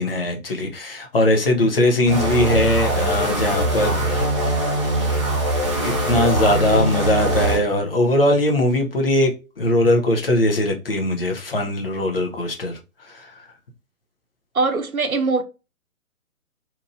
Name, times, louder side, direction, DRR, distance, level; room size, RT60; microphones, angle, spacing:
voice 1, 0.0-4.3 5.8-13.5, left 1 dB, 40° left, 0.7 m, -20 dB
sound 1, 2.1-7.6, right 1 dB, 20° right, 0.8 m, -22 dB
voice 2, 14.6-15.4, right 3 dB, 80° right, 0.7 m, -21 dB
2.8 x 2.5 x 2.5 m
figure-of-eight pair, 140°, 43 cm